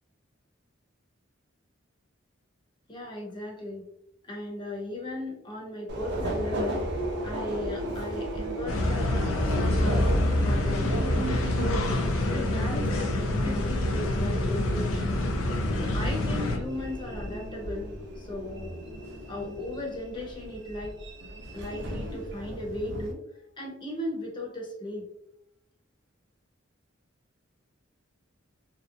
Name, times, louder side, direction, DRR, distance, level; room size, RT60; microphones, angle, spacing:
voice 1, 2.9-3.8 4.2-6.8 7.2-10.1 10.4-11.9 12.3-15.2 15.8-17.9 18.2-18.8 19.3-20.9 21.5-23.2 23.6-25.1, left 1 dB, 25° left, -2 dB, 0.7 m, -36 dB
Subway metro underground, 5.9-23.1, equal, 60° right, 0.5 m, -35 dB
sound 1, 8.7-16.6, left 1 dB, 85° left, 0.4 m, -26 dB
2.8 x 2.0 x 2.4 m, 0.76 s
head